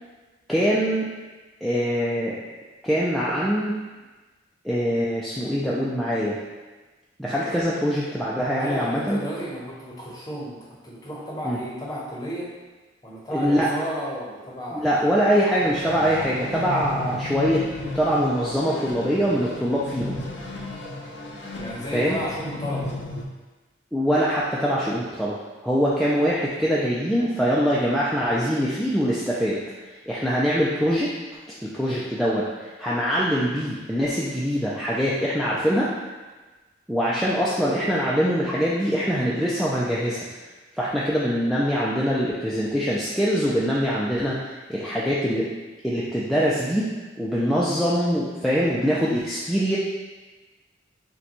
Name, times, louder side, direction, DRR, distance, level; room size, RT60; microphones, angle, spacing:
voice 1, 0.5-1.1 1.6-2.4 2.8-3.7 4.6-6.4 7.2-9.2 11.4-11.6 13.3-13.7 14.7-17.6 17.9-20.2 21.9-22.2 23.9-25.4 25.6-31.1 31.6-35.9 36.9-40.2 40.8-45.5 45.8-46.9 47.2-49.8, equal, ahead, -8 dB, 0.3 m, -23 dB
voice 2, 8.4-12.6 13.0-15.1 21.6-22.9 37.0-37.1, equal, 20° left, -4 dB, 0.8 m, -33 dB
sound 1, 15.6-23.2, left 2 dB, 70° left, 0.5 m, -34 dB
6.3 x 2.2 x 2.9 m, 1.2 s
head